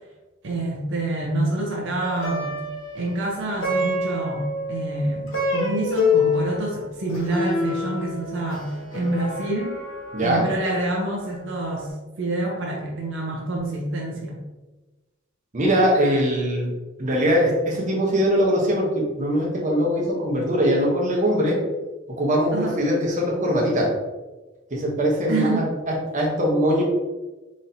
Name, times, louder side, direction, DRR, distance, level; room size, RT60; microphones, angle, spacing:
voice 1, 0.4-2.5 2.9-9.7 10.2-14.4 22.5-22.8 25.3-25.7, right 2 dB, 70° right, -1 dB, 0.7 m, -27 dB
Plucked string instrument, 2.0-11.4, left 3 dB, 75° left, 1.1 m, -27 dB
voice 2, 10.1-10.5 15.5-16.7 17.0-21.6 22.1-23.9 24.7-26.8, equal, 40° right, -2 dB, 0.8 m, -21 dB
4.1 x 3.1 x 2.6 m, 1.2 s
head